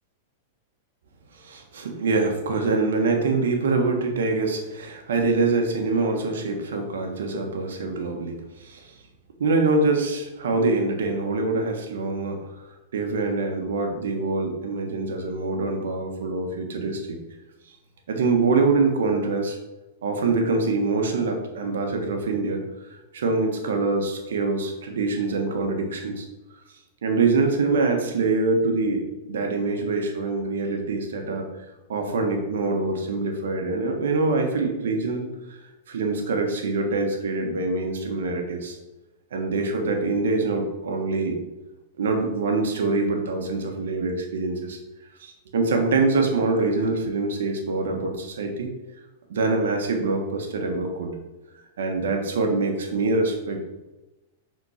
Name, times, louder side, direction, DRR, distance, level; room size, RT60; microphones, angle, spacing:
voice 1, 1.3-8.9 9.4-12.5 12.9-17.2 18.1-19.6 20.0-22.6 23.1-26.2 27.0-31.5 31.9-35.6 35.9-38.8 39.3-41.4 42.0-44.8 45.2-48.7 49.3-51.2 51.8-53.6, right 3 dB, 85° right, 3 dB, 1.4 m, -24 dB
6.3 x 4.4 x 4.2 m, 1.1 s
hypercardioid pair, 135°, 0 cm